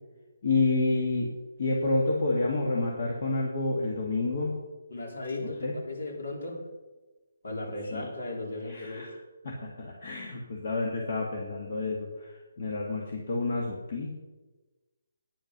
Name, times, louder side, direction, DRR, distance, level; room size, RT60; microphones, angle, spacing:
voice 1, 0.4-1.3 1.6-4.5 5.4-5.7 7.9-8.1 8.7-9.1 9.4-14.2, left 3 dB, 45° left, -1 dB, 1.8 m, -29 dB
voice 2, 4.9-6.6 7.4-9.0, left 2 dB, 65° left, -1 dB, 4.1 m, -36 dB
9.4 x 8.8 x 6.5 m, 1.2 s
hypercardioid pair, 175°, 0 cm